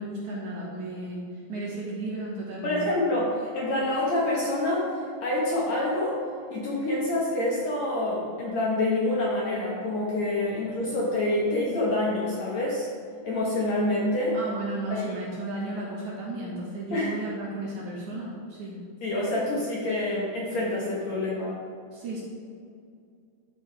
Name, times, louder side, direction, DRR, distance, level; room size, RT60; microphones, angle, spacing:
voice 1, 0.0-2.8 14.3-18.8 21.9-22.2, right 2 dB, 65° right, -4 dB, 2.2 m, -34 dB
voice 2, 2.6-4.9 5.2-6.2 6.5-12.9 13.2-14.4 14.9-15.1 16.9-17.1 19.0-21.6, left 1 dB, 60° left, -5 dB, 2.0 m, -27 dB
12.5 x 5.6 x 3.3 m, 2.3 s
omnidirectional pair, 4.4 m